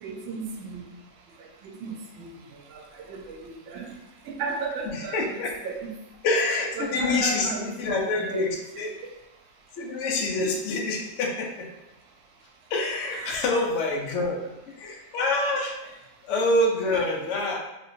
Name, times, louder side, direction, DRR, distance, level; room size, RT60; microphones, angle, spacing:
voice 1, 0.0-0.8 1.6-2.3 3.1-3.9 4.3-5.9 6.8-8.5 13.1-13.7 16.9-17.0, right 4 dB, 85° right, 2 dB, 1.3 m, -35 dB
voice 2, 4.9-5.5 6.2-8.9 9.8-11.7 12.7-15.8 16.2-17.6, left 2 dB, 80° left, 0 dB, 0.6 m, -26 dB
3.1 x 3.0 x 2.5 m, 0.96 s
omnidirectional pair, 2.0 m